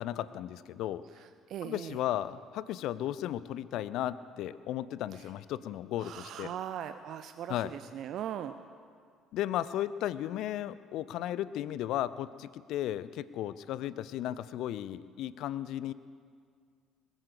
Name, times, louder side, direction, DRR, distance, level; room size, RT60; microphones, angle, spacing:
voice 1, 0.0-1.0 1.6-6.5 7.5-7.7 9.3-15.9, left 12 dB, 65° left, 17 dB, 0.5 m, -35 dB
voice 2, 1.1-2.0 5.1-5.3 6.0-8.5, right 10 dB, 55° right, 10 dB, 0.5 m, -40 dB
20.5 x 9.1 x 6.9 m, 2.1 s
hypercardioid pair, 55°, 0 cm